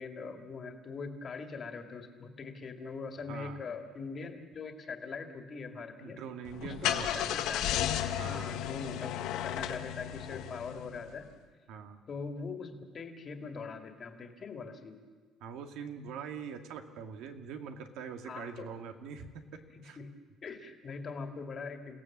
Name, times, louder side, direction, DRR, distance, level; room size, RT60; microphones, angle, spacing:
voice 1, 0.0-6.2 6.6-7.8 8.2-11.3 12.1-15.0 18.2-18.7 19.7-20.1 20.4-22.0, left 4 dB, 30° left, 5 dB, 2.2 m, -42 dB
voice 2, 3.3-3.6 6.0-7.3 8.2-8.6 11.7-12.0 15.4-20.0, right 6 dB, 75° right, 5 dB, 2.1 m, -43 dB
Car / Engine starting, 6.4-11.1, left 11 dB, 80° left, 1.5 m, -34 dB
29.0 x 17.0 x 7.4 m, 1.4 s
cardioid pair, 160°, 0 cm